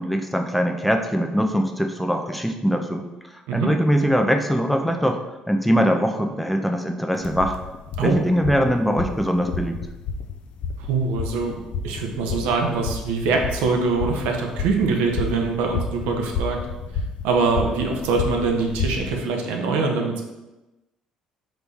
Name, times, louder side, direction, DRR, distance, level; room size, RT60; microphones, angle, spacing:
voice 1, 0.0-3.1 3.3-5.2 5.5-7.6 8.0-9.8, equal, ahead, 4 dB, 0.5 m, -22 dB
sound 1, 7.2-19.1, left 5 dB, 65° left, 0.4 m, -31 dB
voice 2, 10.8-11.5 11.8-16.6 17.2-20.2, right 4 dB, 85° right, 2 dB, 0.6 m, -23 dB
3.9 x 3.1 x 3.5 m, 1.0 s
supercardioid pair, 75°, 2 cm